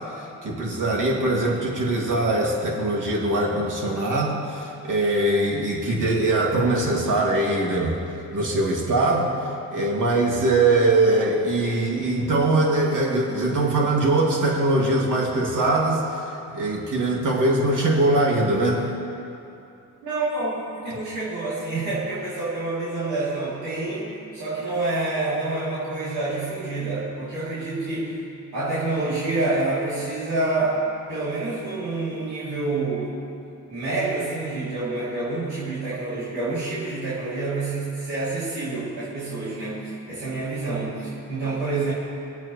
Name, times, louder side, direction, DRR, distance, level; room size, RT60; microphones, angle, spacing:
voice 1, 0.4-8.0 8.3-18.8, right 2 dB, 55° right, -2 dB, 2.7 m, -22 dB
voice 2, 20.0-28.2 28.5-33.2 33.7-41.9, right 2 dB, 90° right, -11 dB, 3.4 m, -27 dB
23.0 x 8.4 x 3.3 m, 2.7 s
cardioid pair, 65°, 37 cm